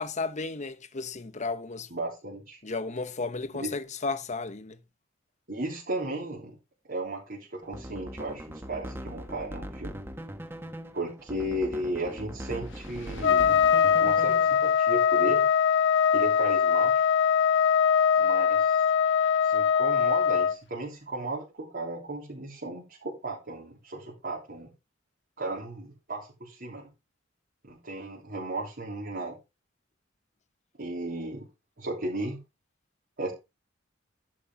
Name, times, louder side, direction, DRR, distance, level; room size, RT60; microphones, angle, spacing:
voice 1, 0.0-1.9 2.6-4.8, left 4 dB, 40° left, 1.0 m, -33 dB
voice 2, 1.9-2.6 3.5-3.7 5.5-6.6 6.9-10.0 10.9-13.6 14.0-15.4 16.1-17.0 18.2-18.8 19.4-24.7 25.4-26.9 27.6-29.4 30.8-31.5 31.8-32.4 33.2-33.3, right 2 dB, 55° right, 3.4 m, -35 dB
sound 1, 7.6-14.7, equal, 10° right, 1.2 m, -40 dB
Trumpet, 13.2-20.5, left 7 dB, 70° left, 0.9 m, -22 dB
11.0 x 5.3 x 5.6 m
head